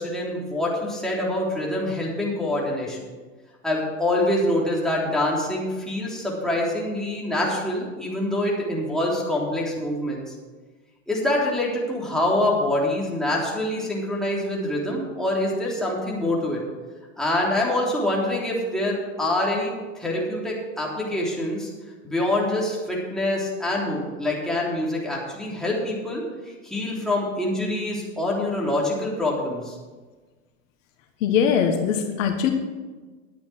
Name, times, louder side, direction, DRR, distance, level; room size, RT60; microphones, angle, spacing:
voice 1, 0.0-3.1 3.6-10.3 11.1-16.6 17.2-21.7 22.0-26.2 26.6-29.8, left 1 dB, ahead, -4 dB, 3.5 m, -25 dB
voice 2, 31.2-32.5, left 7 dB, 70° left, 5 dB, 1.6 m, -21 dB
11.0 x 8.7 x 6.2 m, 1.3 s
hypercardioid pair, 115°, 40 cm